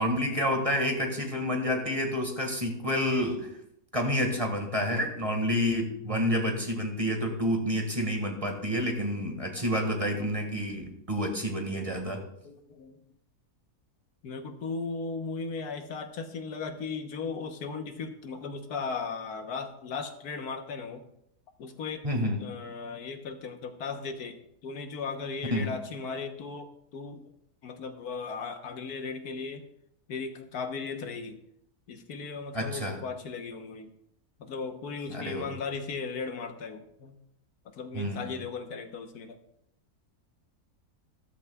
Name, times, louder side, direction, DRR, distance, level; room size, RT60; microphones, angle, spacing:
voice 1, 0.0-3.5 3.9-12.2 22.0-22.4 25.5-25.7 32.5-33.0 35.1-35.5 37.9-38.3, equal, 20° right, 3 dB, 1.8 m, -29 dB
voice 2, 12.4-13.0 14.2-21.0 21.6-22.1 22.4-26.7 26.9-27.3 27.6-29.6 30.1-31.4 31.9-33.9 34.4-37.2 37.6-39.4, left 4 dB, 80° left, 6 dB, 1.5 m, -37 dB
14.5 x 13.5 x 2.3 m, 0.75 s
omnidirectional pair, 1.6 m